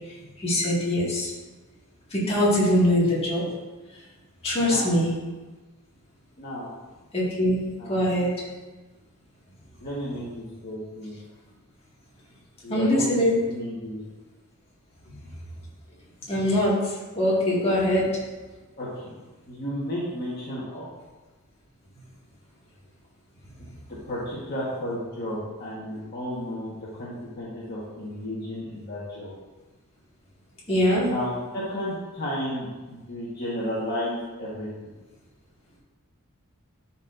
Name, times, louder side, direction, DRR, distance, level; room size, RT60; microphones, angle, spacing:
voice 1, 0.4-1.3 2.1-3.5 4.4-5.1 7.1-8.3 12.7-13.3 15.1-15.2 16.3-18.1 30.7-31.1, equal, 25° left, -7 dB, 1.9 m, -23 dB
voice 2, 4.6-4.9 6.4-6.7 7.8-8.0 9.8-11.2 12.6-13.1 13.5-14.0 18.8-19.2 19.5-20.9 24.1-29.3 31.0-34.9, equal, 45° left, -8 dB, 1.4 m, -33 dB
12.0 x 4.3 x 2.6 m, 1.2 s
head